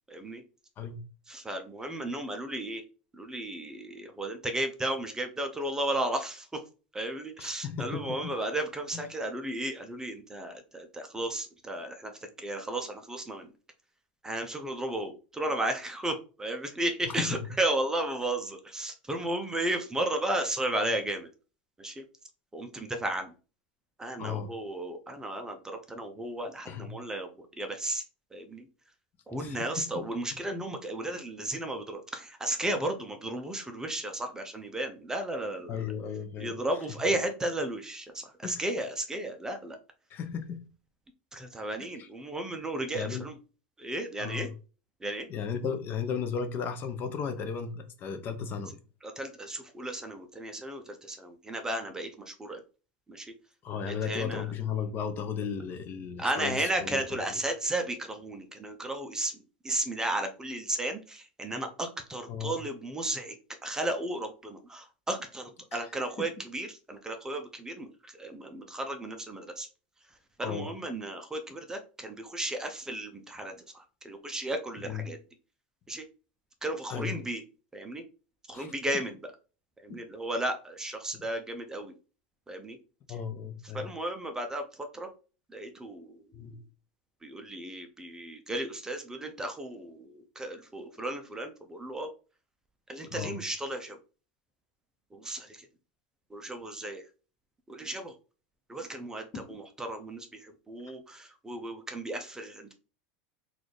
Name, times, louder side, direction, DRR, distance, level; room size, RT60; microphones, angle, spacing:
voice 1, 0.1-0.4 1.3-2.8 3.2-6.5 6.9-12.1 12.4-13.5 14.2-21.3 21.8-22.0 22.5-23.3 24.0-27.3 27.6-28.0 28.3-28.7 29.3-35.9 36.4-39.8 41.3-43.3 43.8-44.5 45.0-45.3 49.0-52.6 53.1-53.3 53.8-54.4 56.2-59.3 59.6-63.3 63.6-67.9 68.1-69.7 70.4-75.2 75.9-76.0 76.6-77.4 77.7-78.0 78.5-79.1 79.8-81.9 82.5-82.8 83.7-84.6 84.9-85.1 85.5-86.2 87.2-92.1 92.9-94.0 95.1-95.6 96.3-97.0 97.7-98.1 98.7-102.7, right 1 dB, 10° right, 0.5 m, -34 dB
voice 2, 7.4-8.4 17.1-17.5 24.2-24.5 26.7-26.9 29.4-30.1 35.7-36.5 36.9-37.0 38.4-38.6 40.1-40.6 42.0-42.1 42.9-43.3 44.2-44.5 45.3-48.8 53.6-57.0 57.3-57.4 62.3-62.6 65.7-65.9 66.2-66.3 70.4-70.7 74.8-75.1 76.9-77.2 78.5-78.7 79.9-80.0 81.1-81.2 83.1-83.9 86.3-86.6 93.1-93.4 99.3-99.6, left 6 dB, 40° left, 0.7 m, -35 dB
3.9 x 2.4 x 3.2 m
supercardioid pair, 120°, 5 cm